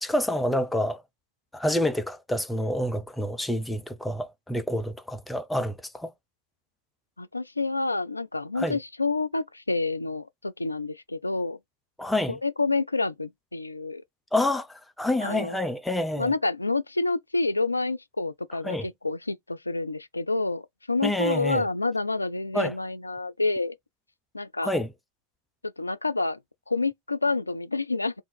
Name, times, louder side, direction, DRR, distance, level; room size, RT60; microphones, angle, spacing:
voice 1, 0.0-1.0 1.5-6.1 8.6-8.8 12.0-12.4 14.3-16.3 18.6-18.9 21.0-21.6 22.5-22.7 24.6-24.9, left 1 dB, 5° left, 0.6 m, -27 dB
voice 2, 7.2-11.6 12.3-14.0 15.2-15.6 16.2-23.7 24.3-24.7 25.6-26.4 26.7-28.1, left 3 dB, 80° left, 0.4 m, -28 dB
3.7 x 2.6 x 4.1 m
figure-of-eight pair, 90°, 0 cm